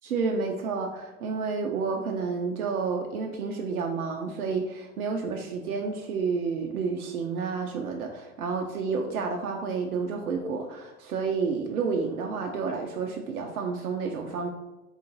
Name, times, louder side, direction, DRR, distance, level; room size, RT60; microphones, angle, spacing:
voice 1, 0.0-14.5, right 5 dB, 90° right, 2 dB, 0.6 m, -30 dB
3.9 x 2.4 x 3.8 m, 1.0 s
hypercardioid pair, 100°, 43 cm